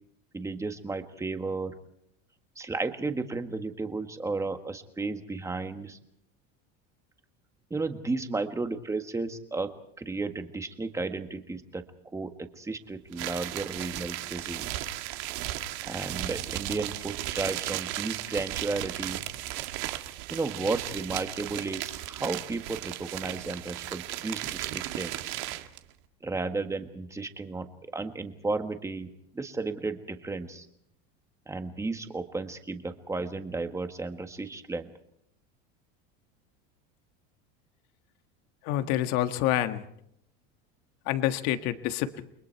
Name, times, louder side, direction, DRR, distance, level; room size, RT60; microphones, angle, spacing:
voice 1, 0.3-1.7 2.6-6.0 7.7-11.8 12.1-14.9 15.8-19.2 20.3-25.3 26.2-27.7 27.9-30.7 31.5-34.9, right 3 dB, 10° right, 7 dB, 1.5 m, -33 dB
sound 1, 13.1-25.8, right 15 dB, 60° right, 1.7 m, -35 dB
voice 2, 38.6-39.8 41.0-42.2, left 13 dB, 55° left, 9 dB, 1.6 m, -27 dB
29.5 x 22.5 x 4.6 m, 0.73 s
cardioid pair, 155°, 33 cm